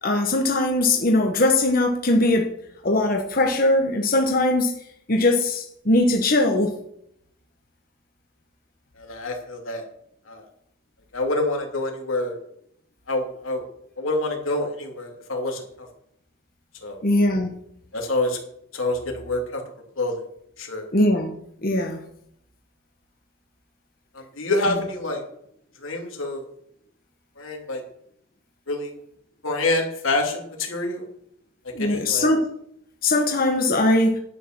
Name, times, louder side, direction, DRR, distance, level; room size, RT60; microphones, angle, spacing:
voice 1, 0.0-2.5 2.8-4.7 5.1-6.7 17.0-17.5 20.9-21.4 21.6-22.0 31.7-32.4 33.0-34.2, left 2 dB, 45° left, 3 dB, 1.2 m, -20 dB
voice 2, 9.0-9.8 10.3-10.4 11.1-12.3 13.1-13.6 14.0-15.9 16.8-17.0 17.9-18.4 18.7-19.6 20.0-20.2 20.6-20.9 24.1-25.2 25.8-26.4 27.4-27.8 28.7-28.9 29.4-31.0 31.8-32.3, left 2 dB, 90° left, 1 dB, 3.0 m, -27 dB
11.0 x 9.3 x 6.1 m, 0.72 s
head